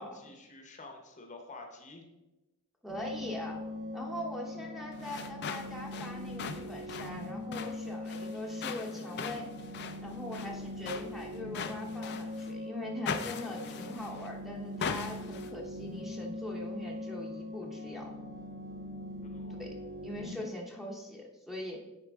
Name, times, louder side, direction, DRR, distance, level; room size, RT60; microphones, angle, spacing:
voice 1, 0.0-2.0 19.2-19.6, left 2 dB, 35° left, 3 dB, 0.9 m, -49 dB
voice 2, 2.8-3.6 3.9-9.5 10.0-18.1 19.5-19.8 20.0-21.8, left 1 dB, ahead, -1 dB, 0.9 m, -42 dB
sound 1, 2.9-20.3, left 1 dB, 45° right, 1.3 m, -41 dB
sound 2, 4.9-12.5 13.0-14.3 14.8-15.5, left 6 dB, 55° left, 0.5 m, -40 dB
9.9 x 4.5 x 3.5 m, 1.0 s
head